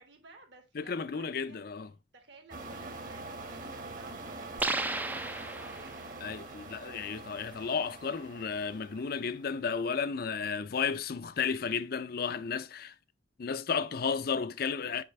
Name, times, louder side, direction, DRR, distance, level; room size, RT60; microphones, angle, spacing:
voice 1, 0.0-1.7 2.1-6.0, right 3 dB, 65° right, 2.0 m, -55 dB
voice 2, 0.7-1.9 6.2-12.9 13.4-15.0, left 6 dB, 55° left, 0.5 m, -33 dB
sound 1, 2.5-9.5, right 2 dB, 45° right, 1.4 m, -44 dB
sound 2, 4.6-6.1, right 2 dB, 10° right, 0.4 m, -34 dB
6.6 x 5.0 x 3.1 m
head